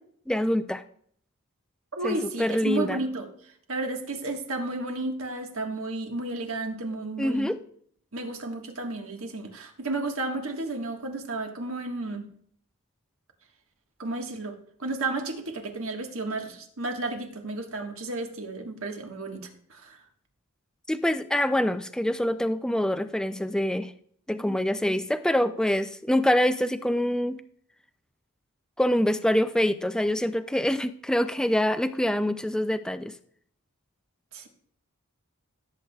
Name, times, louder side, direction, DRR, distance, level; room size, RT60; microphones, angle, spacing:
voice 1, 0.3-0.8 2.0-3.0 7.2-7.6 20.9-23.9 24.3-27.4 28.8-33.1, left 1 dB, 5° left, 10 dB, 0.3 m, -25 dB
voice 2, 2.0-7.5 8.1-12.2 14.0-20.0 34.3-34.5, right 2 dB, 65° right, 3 dB, 1.5 m, -32 dB
17.0 x 8.0 x 2.3 m, 0.63 s
head